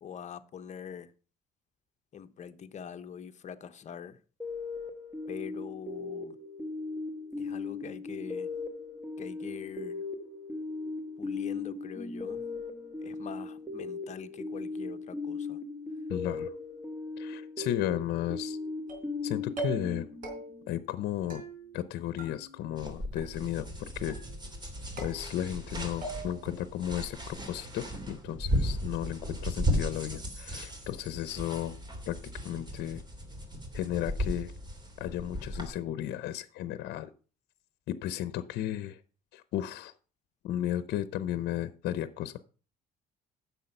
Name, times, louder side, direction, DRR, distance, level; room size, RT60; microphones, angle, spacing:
voice 1, 0.0-1.1 2.1-4.2 5.3-6.4 7.4-8.5 9.2-10.0 11.2-12.4 13.0-15.6, left 8 dB, 45° left, 0.9 m, -43 dB
sound 1, 4.4-20.7, left 3 dB, 10° right, 1.6 m, -38 dB
voice 2, 16.1-16.5 17.2-18.6 19.2-20.1 20.7-21.4 21.7-24.2 25.0-31.8 32.1-32.2 32.4-33.0 33.7-34.5 35.0-37.1 37.9-39.0 39.3-39.9 40.4-42.4, left 12 dB, 75° left, 0.7 m, -34 dB
sound 2, 18.9-19.2 19.6-20.0 20.2-20.8 21.3-21.9 22.2-22.9 23.2-23.7 24.1-24.6 25.0-25.7 26.0-26.6, right 3 dB, 55° right, 4.3 m, -42 dB
sound 3, 22.8-35.7, equal, 25° right, 3.0 m, -36 dB
10.0 x 7.1 x 5.4 m
cardioid pair, 110°, 17 cm